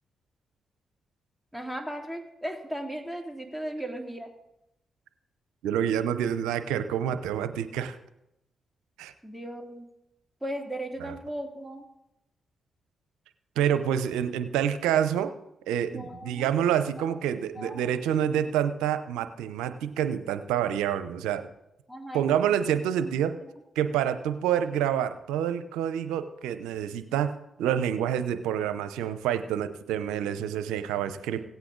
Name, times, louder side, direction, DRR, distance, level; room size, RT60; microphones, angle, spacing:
voice 1, 1.5-4.3 9.2-9.9 10.4-11.9 15.9-16.7 17.0-17.1 17.5-17.9 21.9-22.4 23.0-23.5, right 1 dB, ahead, 3 dB, 2.6 m, -37 dB
voice 2, 5.6-8.0 9.0-9.1 13.6-15.3 15.7-21.5 22.1-23.4 23.8-31.4, right 9 dB, 85° right, 11 dB, 0.7 m, -27 dB
17.0 x 8.3 x 3.9 m, 0.87 s
supercardioid pair, 45°, 0 cm